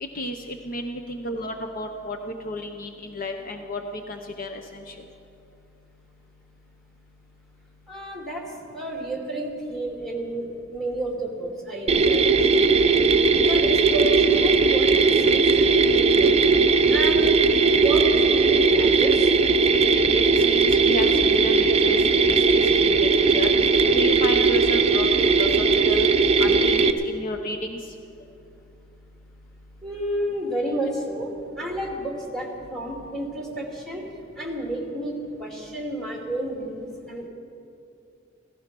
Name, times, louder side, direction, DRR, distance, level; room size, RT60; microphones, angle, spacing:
voice 1, 0.0-3.8 4.1-4.9 19.9-23.5 23.9-25.5 25.9-26.1 26.4-27.8, left 1 dB, 45° left, 5 dB, 0.8 m, -32 dB
voice 2, 7.9-8.4 8.7-12.9 13.3-16.4 16.9-17.3 17.7-19.3 29.8-34.0 34.4-37.3, right 1 dB, 5° left, -1 dB, 2.5 m, -31 dB
Mechanisms, 11.9-26.9, right 4 dB, 30° right, 0.6 m, -18 dB
16.0 x 14.5 x 6.1 m, 2.6 s
head